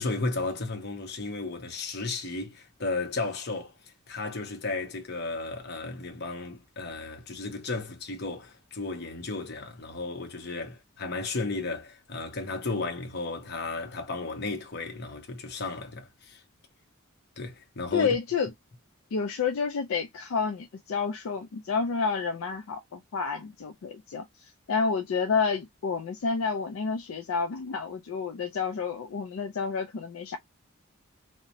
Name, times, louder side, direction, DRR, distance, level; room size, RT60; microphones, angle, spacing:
voice 1, 0.0-3.7 4.1-16.4 17.4-18.1, left 3 dB, 50° left, 0.8 m, -34 dB
voice 2, 17.9-18.5 19.1-24.2 24.7-30.4, left 5 dB, 75° left, 0.4 m, -29 dB
2.8 x 2.1 x 2.5 m
head